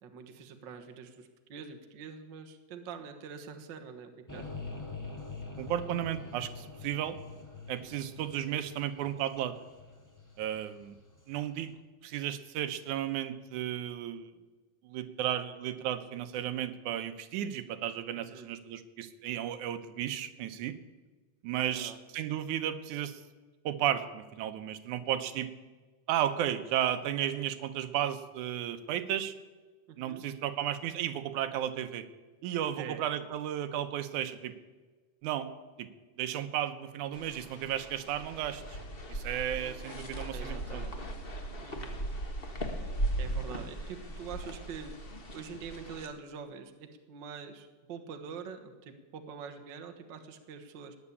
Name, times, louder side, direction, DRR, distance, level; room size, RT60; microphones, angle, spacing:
voice 1, 0.0-4.5 18.1-18.5 21.5-22.0 29.9-30.2 32.8-33.3 40.3-41.0 41.6-42.0 43.2-44.9 45.3-51.0, right 6 dB, 50° right, 6 dB, 1.4 m, -45 dB
sound 1, 4.3-11.4, left 4 dB, 10° left, 1.5 m, -45 dB
voice 2, 5.6-7.2 7.7-9.6 10.4-11.0 11.3-11.7 12.0-14.3 14.8-20.7 21.4-23.2 23.7-25.5 26.1-29.4 30.0-32.1 32.4-34.5 35.2-35.5 35.8-35.9 36.2-38.8 39.1-40.8, right 11 dB, 75° right, 9 dB, 2.3 m, -34 dB
sound 2, 37.1-46.1, right 1 dB, 90° left, 0.5 m, -38 dB
15.5 x 9.9 x 8.4 m, 1.3 s
omnidirectional pair, 3.6 m